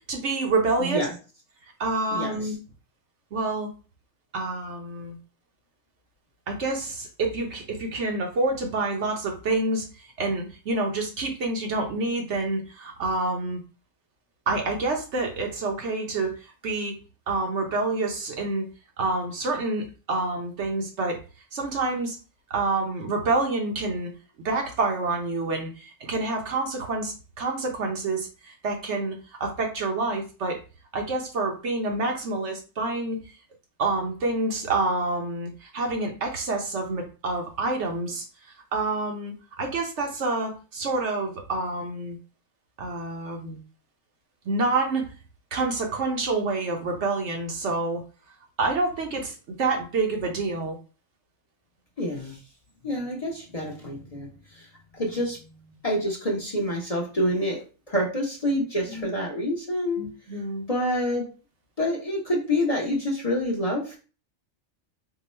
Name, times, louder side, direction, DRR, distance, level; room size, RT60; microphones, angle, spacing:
voice 1, 0.1-1.1 1.8-2.5 3.3-3.7 4.3-5.2 6.5-13.6 14.5-16.4 16.6-16.9 17.3-18.7 19.0-21.2 21.5-22.2 22.5-24.1 24.4-30.6 30.9-33.2 33.8-38.2 38.7-42.2 42.8-43.6 44.5-45.1 45.5-48.0 48.6-50.8 58.9-59.1 60.0-60.6, right 3 dB, 60° right, 2 dB, 1.0 m, -27 dB
voice 2, 52.0-52.4 52.8-54.3 54.5-54.7 54.9-55.4 55.8-57.6 57.9-60.1 60.7-61.2 61.8-64.0, left 1 dB, 30° left, -2 dB, 0.9 m, -27 dB
3.7 x 2.2 x 4.2 m, 0.34 s
omnidirectional pair, 1.4 m